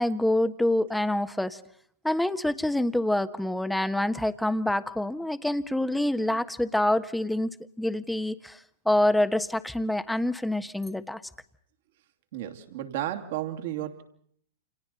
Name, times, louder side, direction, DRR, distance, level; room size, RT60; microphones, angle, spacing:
voice 1, 0.0-1.6 2.0-7.5 7.8-8.6 8.8-11.2, left 1 dB, 5° left, 10 dB, 1.3 m, -26 dB
voice 2, 12.3-14.0, right 12 dB, 60° right, 5 dB, 2.8 m, -33 dB
30.0 x 28.0 x 4.2 m, 0.65 s
hypercardioid pair, 105°, 0 cm